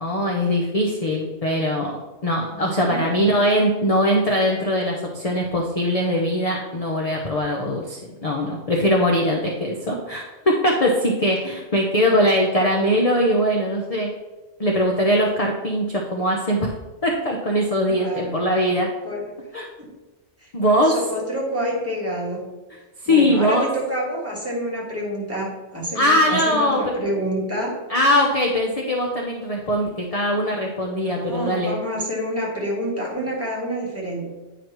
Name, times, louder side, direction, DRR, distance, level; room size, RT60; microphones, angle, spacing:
voice 1, 0.0-1.9 2.2-14.1 14.6-16.7 17.0-18.9 19.5-19.7 20.5-21.0 23.0-23.7 25.9-26.8 27.9-31.7, equal, 35° left, 0 dB, 0.7 m, -21 dB
voice 2, 2.5-3.0 17.8-18.4 19.0-19.3 19.8-19.9 20.4-22.4 23.1-27.8 31.0-34.2, equal, 10° right, -5 dB, 1.6 m, -28 dB
9.2 x 5.1 x 3.0 m, 1.1 s
omnidirectional pair, 1.3 m